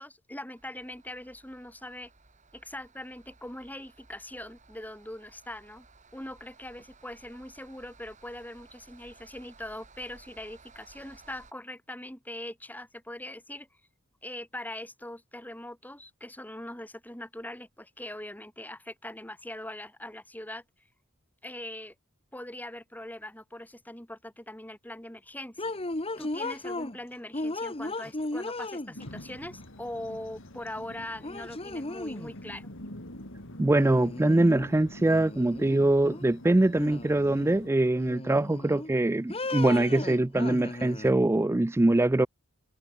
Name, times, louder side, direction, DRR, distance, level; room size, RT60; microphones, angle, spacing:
voice 1, 0.0-2.1 2.5-5.9 6.1-13.7 14.2-20.6 21.4-21.9 22.3-25.8 26.2-32.7, left 1 dB, 10° left, 6.6 m, -41 dB
sound 1, 0.6-11.5, right 3 dB, 35° right, 4.2 m, -57 dB
sound 2, 25.6-27.0 27.3-29.2 30.7-30.8 31.2-32.4 33.7-34.7 35.0-36.2 36.7-37.6 38.0-38.9 39.3-41.1, left 2 dB, 25° left, 1.8 m, -36 dB
sound 3, 29.0-37.7, left 1 dB, 65° left, 4.9 m, -46 dB
voice 2, 33.6-42.3, right 2 dB, 10° right, 0.4 m, -23 dB
head